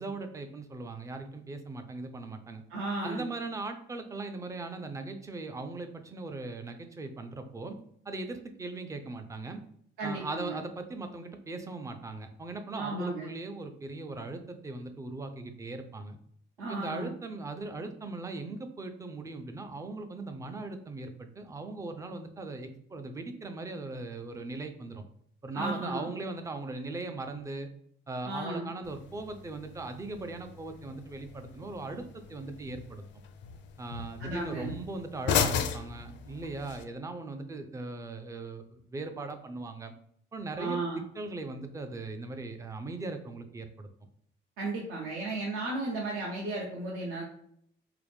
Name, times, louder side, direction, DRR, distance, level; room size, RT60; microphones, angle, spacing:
voice 1, 0.0-2.6 3.0-7.8 8.1-9.6 10.0-16.2 16.7-25.1 25.4-27.7 28.1-33.0 33.8-39.9 40.3-40.8 41.2-43.9, right 3 dB, 15° right, 7 dB, 0.3 m, -39 dB
voice 2, 2.7-3.2 10.0-10.6 12.7-13.3 16.6-17.1 25.5-26.1 28.2-28.7 34.2-34.7 40.6-41.0 44.6-47.2, right 2 dB, 85° right, -4 dB, 0.9 m, -34 dB
sound 1, 28.8-36.8, left 7 dB, 65° left, 0.4 m, -36 dB
4.6 x 2.1 x 3.4 m, 0.67 s
cardioid pair, 160°, 20 cm